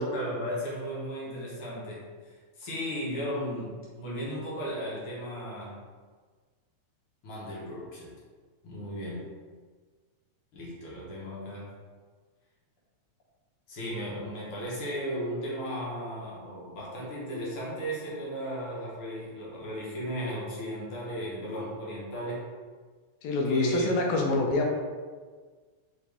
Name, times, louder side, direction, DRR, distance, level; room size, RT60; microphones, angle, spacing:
voice 1, 0.0-2.0 2.6-5.8 7.2-8.1 8.6-9.3 10.5-11.7 13.7-22.5 23.4-24.0, equal, 60° left, -6 dB, 1.6 m, -35 dB
voice 2, 23.2-24.8, left 3 dB, 75° left, 1 dB, 1.9 m, -26 dB
4.9 x 3.1 x 3.3 m, 1.5 s
omnidirectional pair, 3.4 m